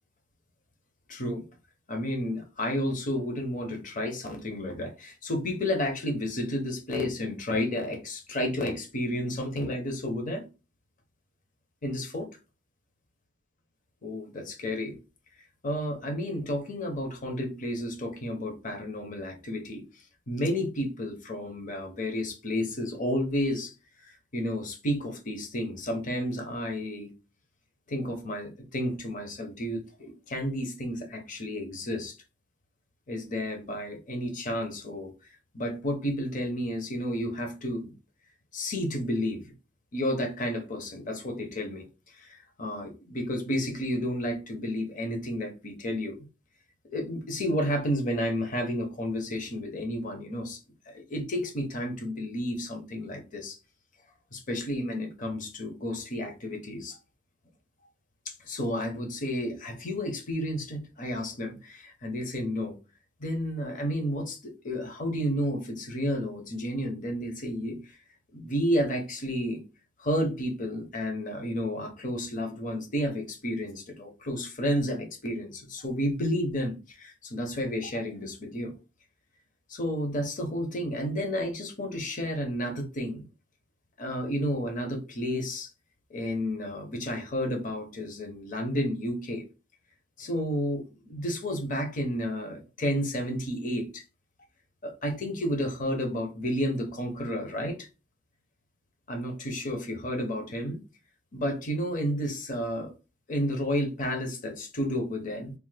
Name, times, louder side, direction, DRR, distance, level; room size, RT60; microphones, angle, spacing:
voice 1, 1.1-1.4 1.9-10.5 11.8-12.3 14.0-15.0 15.6-19.8 20.3-23.7 24.0-27.1 27.9-32.1 33.1-37.9 38.5-39.4 39.9-41.9 42.1-46.2 46.9-50.6 50.9-53.6 54.3-57.0 58.3-62.8 63.2-68.0 68.3-69.6 70.0-78.7 79.7-83.3 84.0-85.7 86.1-89.4 90.2-94.0 94.8-97.9 99.1-100.8 101.3-102.9 103.3-105.5, equal, 45° left, 0.7 m, -31 dB
3.3 x 2.0 x 3.2 m
head